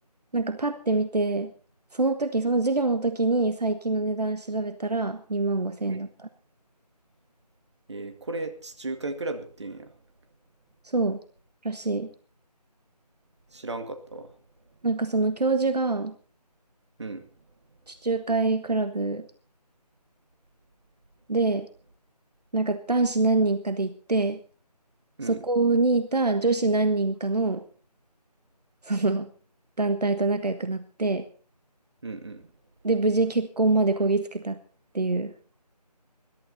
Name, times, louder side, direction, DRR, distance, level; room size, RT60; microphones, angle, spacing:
voice 1, 0.3-1.5 1.9-6.3 10.8-11.2 11.6-12.1 14.8-16.1 17.9-19.2 21.3-21.7 22.5-24.4 25.2-27.6 28.8-29.3 29.8-31.2 32.8-34.6 34.9-35.3, right 3 dB, 70° right, 10 dB, 1.4 m, -25 dB
voice 2, 7.9-9.9 13.5-14.3 17.0-17.2 25.2-25.4 32.0-32.5, right 2 dB, 40° right, 6 dB, 2.2 m, -35 dB
21.0 x 12.5 x 4.2 m, 0.42 s
figure-of-eight pair, 170°, 21 cm